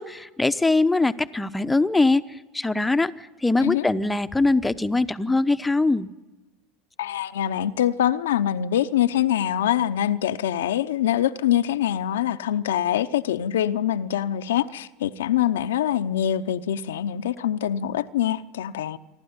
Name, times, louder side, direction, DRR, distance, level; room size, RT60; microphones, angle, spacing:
voice 1, 0.0-2.2 2.5-6.1, left 2 dB, 10° left, 0.9 m, -22 dB
voice 2, 7.0-19.0, left 11 dB, 85° left, 0.7 m, -24 dB
27.0 x 12.0 x 9.6 m
hypercardioid pair, 90°, 0 cm